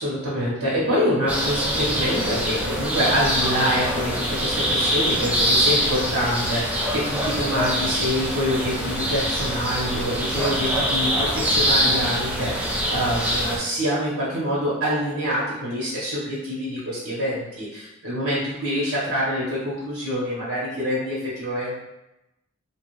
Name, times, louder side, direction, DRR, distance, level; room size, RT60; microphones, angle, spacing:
voice 1, 0.0-21.8, equal, 60° right, -7 dB, 0.9 m, -26 dB
sound 1, 1.3-13.6, equal, 5° right, 0.4 m, -24 dB
2.9 x 2.3 x 3.0 m, 0.92 s
head